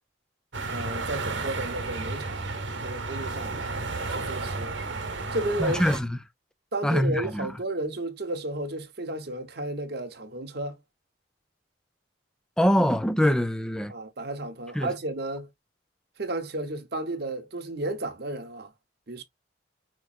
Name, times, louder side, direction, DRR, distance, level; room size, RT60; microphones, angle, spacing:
sound 1, 0.5-6.0, right 3 dB, 75° right, 1.1 m, -32 dB
voice 1, 0.7-3.6 4.1-4.7 5.3-5.9 6.7-10.8 13.9-15.5 16.2-18.7 19.1-19.2, right 1 dB, 55° right, 0.9 m, -33 dB
voice 2, 5.6-6.1 6.8-7.5 12.6-13.9 14.7-14.9, equal, 5° left, 0.3 m, -23 dB
4.7 x 3.0 x 2.4 m
head